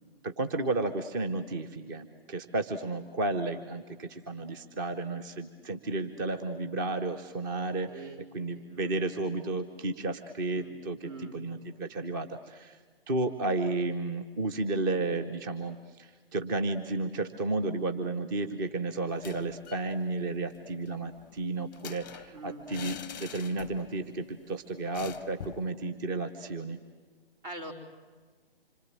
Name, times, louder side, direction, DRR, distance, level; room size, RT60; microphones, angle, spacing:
voice 1, 0.2-8.1 8.3-11.0 11.3-12.8 13.1-26.8, right 2 dB, 20° right, 7 dB, 0.8 m, -32 dB
voice 2, 7.9-8.9 10.5-10.8 11.0-11.4 22.3-22.7 23.3-23.4 27.4-27.7, right 3 dB, 65° right, -1 dB, 4.6 m, -44 dB
sound 1, 19.1-19.9 20.2-20.3 20.6-24.0 24.3-24.4 24.9-25.7, left 8 dB, 20° left, 0.7 m, -45 dB
26.5 x 24.0 x 7.5 m, 1.4 s
figure-of-eight pair, 135°, 30 cm